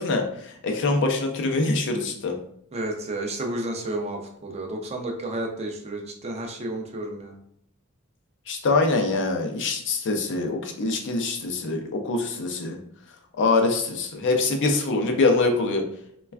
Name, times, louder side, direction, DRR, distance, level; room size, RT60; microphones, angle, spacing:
voice 1, 0.0-2.4 8.5-12.8 13.4-15.8, left 3 dB, 55° left, 4 dB, 0.4 m, -24 dB
voice 2, 2.7-7.3, right 1 dB, 30° right, 2 dB, 0.4 m, -31 dB
3.2 x 2.2 x 2.3 m, 0.68 s
head